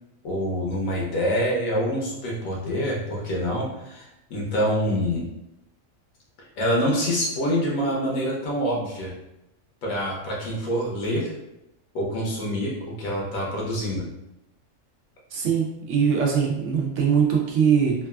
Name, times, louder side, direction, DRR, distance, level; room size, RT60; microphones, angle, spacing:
voice 1, 0.2-5.3 6.6-9.1 9.8-11.3 11.9-14.1, equal, 90° left, -3 dB, 1.2 m, -26 dB
voice 2, 15.3-17.9, right 7 dB, 70° right, -1 dB, 0.9 m, -21 dB
3.3 x 2.3 x 2.3 m, 0.87 s
omnidirectional pair, 1.4 m